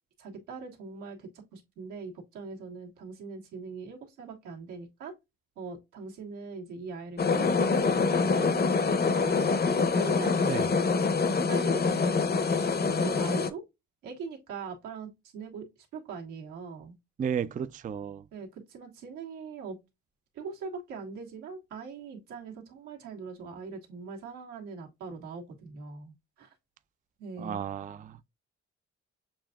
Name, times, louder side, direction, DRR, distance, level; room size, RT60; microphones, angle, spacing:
voice 1, 0.2-5.1 5.6-9.3 9.9-10.9 11.5-13.6 14.0-15.7 15.9-17.0 18.3-19.8 20.3-26.5 27.2-27.6, right 4 dB, 85° right, 1.6 m, -42 dB
sound 1, 7.2-13.5, left 4 dB, 30° left, 0.7 m, -25 dB
voice 2, 17.2-18.2 27.4-28.2, right 7 dB, 25° right, 0.4 m, -33 dB
7.0 x 2.6 x 2.2 m
supercardioid pair, 55°, 30 cm